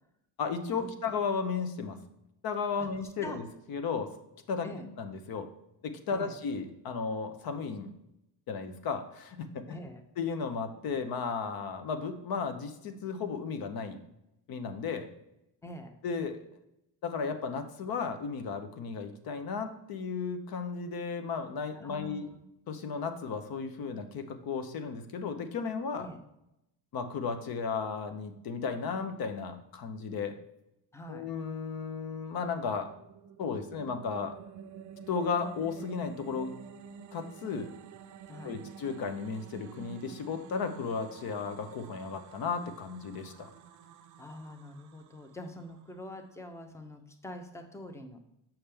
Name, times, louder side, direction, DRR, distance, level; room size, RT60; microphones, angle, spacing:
voice 1, 0.4-2.0 2.4-3.4 3.7-4.1 4.5-4.7 5.0-5.5 5.8-7.9 8.5-9.8 10.2-14.0 14.5-15.1 16.0-16.4 17.0-22.3 22.7-26.1 26.9-30.4 31.1-32.9 33.4-34.3 35.1-36.5 37.1-37.7 38.4-43.5, left 5 dB, 55° left, 8 dB, 0.8 m, -34 dB
voice 2, 9.7-10.0 15.6-15.9 21.7-22.4 26.0-26.2 30.9-31.3 38.3-38.6 44.2-48.2, left 1 dB, 5° left, 6 dB, 0.6 m, -44 dB
sound 1, 32.8-46.0, right 7 dB, 45° right, 0.5 m, -50 dB
7.1 x 5.8 x 3.4 m, 0.85 s
cardioid pair, 135°, 44 cm